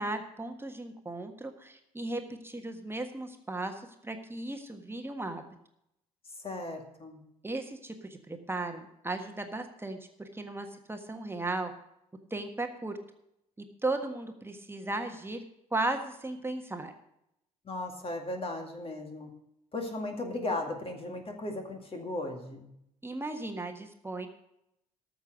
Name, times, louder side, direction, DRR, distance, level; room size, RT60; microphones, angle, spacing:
voice 1, 0.0-5.4 7.4-11.7 12.3-13.0 13.8-15.4 15.7-16.9 23.0-24.3, right 2 dB, 10° right, 5 dB, 1.5 m, -36 dB
voice 2, 6.4-7.2 17.6-19.3 19.7-22.7, left 2 dB, 30° left, 3 dB, 2.2 m, -36 dB
13.5 x 6.6 x 6.4 m, 0.79 s
figure-of-eight pair, 50°, 19 cm